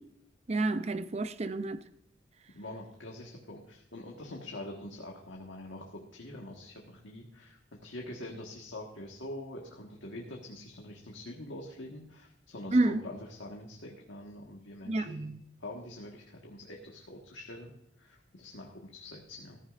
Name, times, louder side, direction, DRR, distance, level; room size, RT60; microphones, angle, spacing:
voice 1, 0.5-1.8 12.7-13.0 14.9-15.3, right 2 dB, 35° right, 0.5 m, -29 dB
voice 2, 2.5-15.3 15.6-17.7 18.0-19.6, left 1 dB, 90° left, 1.5 m, -45 dB
14.5 x 14.5 x 2.5 m
head